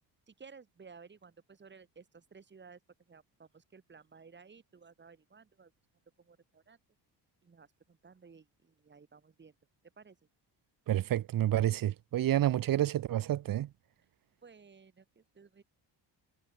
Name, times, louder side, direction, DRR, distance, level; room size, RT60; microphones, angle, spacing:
voice 1, 0.3-2.8 3.1-5.7 6.2-6.8 7.4-9.6 10.0-10.2 14.4-15.6, right 5 dB, 25° right, 5.3 m, -56 dB
voice 2, 10.9-13.7, right 12 dB, 50° right, 1.1 m, -29 dB
cardioid pair, 165°, 42 cm